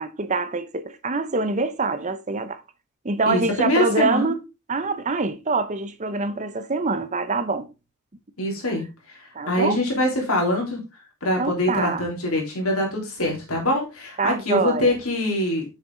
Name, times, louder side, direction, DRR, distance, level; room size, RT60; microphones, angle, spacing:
voice 1, 0.0-2.6 3.0-4.4 4.7-7.7 9.3-9.8 11.4-12.0 14.2-14.9, right 3 dB, 35° right, 0.7 m, -25 dB
voice 2, 3.2-4.3 8.4-10.8 11.2-15.7, left 1 dB, 75° left, 3.8 m, -24 dB
7.9 x 6.6 x 3.8 m
head